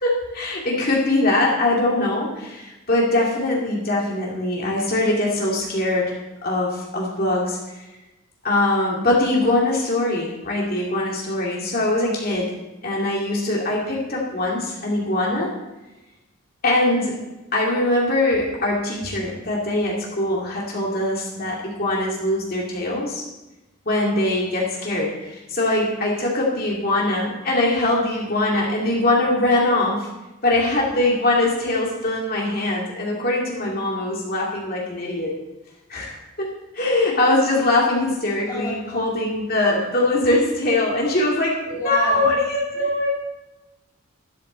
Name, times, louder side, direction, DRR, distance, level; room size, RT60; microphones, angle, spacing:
voice 1, 0.0-6.1 6.4-7.8 8.4-12.5 12.8-15.5 16.6-17.2 17.5-23.2 23.9-30.1 30.4-35.3 35.9-43.1, left 2 dB, 45° left, -3 dB, 2.4 m, -22 dB
voice 2, 38.5-39.1 41.7-42.3 42.8-42.9, left 1 dB, 20° left, -4 dB, 2.6 m, -32 dB
12.5 x 12.0 x 4.0 m, 1.0 s
head